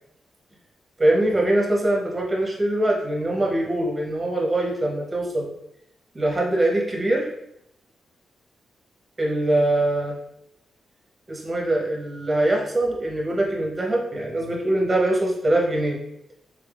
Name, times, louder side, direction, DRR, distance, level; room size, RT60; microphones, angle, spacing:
voice 1, 1.0-5.5 6.1-7.3 9.2-10.2 11.3-16.0, right 1 dB, 20° right, -1 dB, 0.7 m, -23 dB
3.4 x 3.3 x 2.3 m, 0.78 s
wide cardioid pair, 135°, 0 cm